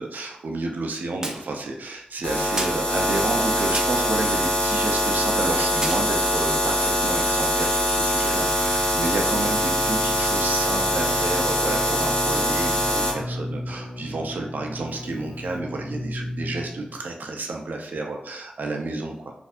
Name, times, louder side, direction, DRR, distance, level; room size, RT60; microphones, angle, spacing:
voice 1, 0.0-19.3, right 2 dB, 85° right, 2 dB, 0.5 m, -30 dB
sound 1, 1.2-1.6 2.6-2.8 3.7-4.2 5.4-5.5 5.8-6.5, right 1 dB, 20° right, 0.5 m, -32 dB
sound 2, 2.2-13.1, equal, 30° left, 1.3 m, -23 dB
Keyboard (musical), 8.3-17.1, left 1 dB, 60° left, 0.7 m, -36 dB
4.3 x 2.6 x 2.5 m, 0.76 s
wide cardioid pair, 80°, 3 cm